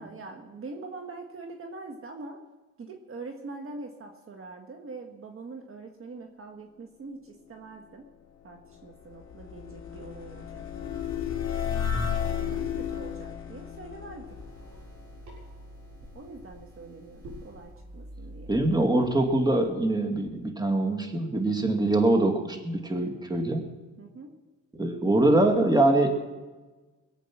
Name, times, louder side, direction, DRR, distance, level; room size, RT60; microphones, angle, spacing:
voice 1, 0.0-2.4 2.8-8.0 8.4-11.0 11.7-11.9 12.3-14.3 16.1-18.5 24.0-24.3, right 3 dB, 45° right, 3 dB, 1.7 m, -43 dB
sound 1, 8.4-15.6, left 7 dB, 65° left, 3.5 m, -33 dB
sound 2, 14.2-19.7, equal, 70° right, 6.7 m, -47 dB
voice 2, 18.5-23.7 24.7-26.1, right 2 dB, 15° right, 4 dB, 2.3 m, -23 dB
22.0 x 8.2 x 6.1 m, 1.2 s
cardioid pair, 90°, 30 cm